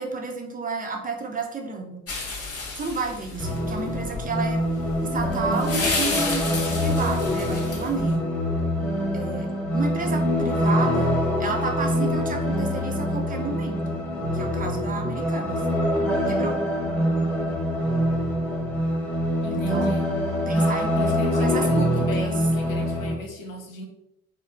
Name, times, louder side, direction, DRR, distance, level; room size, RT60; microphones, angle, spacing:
voice 1, 0.0-2.0 2.8-4.6 5.0-8.3 9.1-14.0 14.3-15.6 16.3-16.6 19.5-20.0 20.5-22.3, right 4 dB, 20° right, 2 dB, 0.5 m, -31 dB
sound 1, 2.1-8.1, left 3 dB, 35° left, 0.9 m, -31 dB
sound 2, 3.4-23.1, equal, 5° left, 0.8 m, -25 dB
voice 2, 19.4-20.1 20.5-23.9, left 1 dB, 85° left, 2 dB, 0.5 m, -37 dB
3.1 x 2.7 x 2.4 m, 0.81 s
figure-of-eight pair, 45°, 39 cm